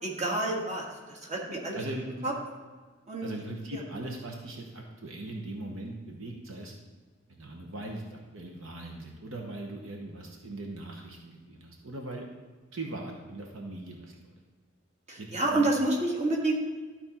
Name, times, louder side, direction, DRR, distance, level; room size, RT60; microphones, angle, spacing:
voice 1, 0.0-0.8 1.2-1.8 2.2-2.3 3.1-3.3 3.7-3.8 15.1-16.6, right 2 dB, 35° right, -2 dB, 1.6 m, -28 dB
voice 2, 1.7-2.3 3.2-6.7 7.3-12.2 12.7-14.3 15.2-15.7, right 1 dB, 70° right, 1 dB, 1.0 m, -40 dB
12.5 x 4.3 x 4.2 m, 1.5 s
head